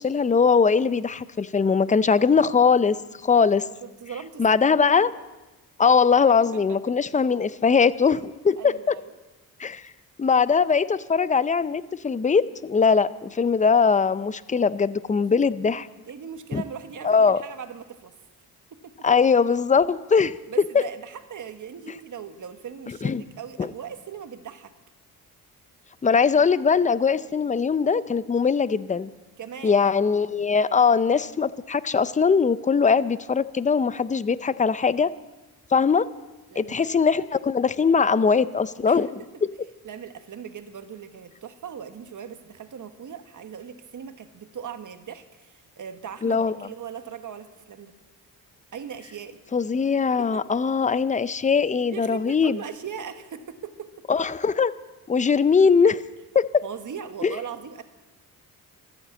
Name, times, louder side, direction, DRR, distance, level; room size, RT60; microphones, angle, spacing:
voice 1, 0.0-3.0 3.2-3.7 4.4-5.1 5.8-8.9 9.6-9.8 10.2-15.9 16.5-16.6 17.0-17.4 19.0-20.4 23.0-23.2 26.0-29.1 29.6-35.1 35.7-36.1 36.6-39.2 46.2-46.5 49.5-52.6 54.1-54.7 55.1-56.0 56.3-56.6 57.2-57.3, left 5 dB, 20° left, 16 dB, 0.5 m, -21 dB
voice 2, 3.8-4.4 6.5-6.9 8.6-9.1 15.2-15.3 16.1-18.1 18.8-19.1 20.5-24.7 29.4-29.9 36.5-36.9 38.9-39.0 39.8-47.9 48.7-49.4 50.2-50.9 51.9-53.9 56.6-57.8, right 7 dB, 55° right, 9 dB, 1.3 m, -39 dB
14.0 x 9.6 x 8.2 m, 1.1 s
cardioid pair, 90°, 37 cm